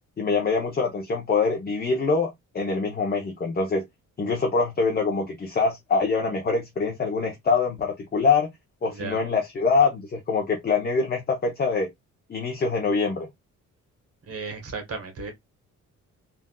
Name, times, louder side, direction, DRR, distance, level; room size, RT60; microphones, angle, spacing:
voice 1, 0.2-3.8 4.2-8.5 8.8-11.9 12.3-13.3, left 4 dB, 30° left, 0.8 m, -24 dB
voice 2, 8.9-9.2 14.3-15.3, right 4 dB, 50° right, 1.3 m, -34 dB
3.5 x 2.6 x 2.3 m
cardioid pair, 90°, 30 cm